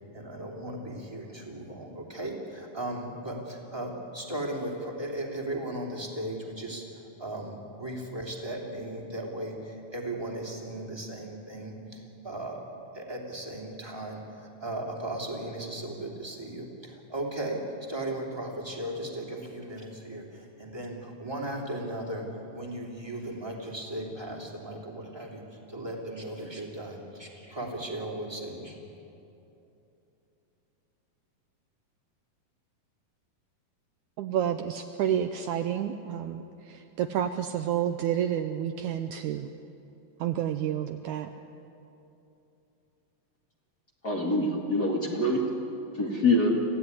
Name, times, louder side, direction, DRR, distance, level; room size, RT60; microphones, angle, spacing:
voice 1, 0.1-12.6 12.9-28.8, right 1 dB, 10° right, -1 dB, 2.5 m, -37 dB
voice 2, 34.2-39.5 40.2-41.3, right 10 dB, 75° right, 8 dB, 1.9 m, -30 dB
voice 3, 44.0-45.4 46.0-46.5, left 2 dB, 35° left, -2 dB, 2.1 m, -25 dB
26.5 x 16.0 x 9.6 m, 2.9 s
omnidirectional pair, 3.9 m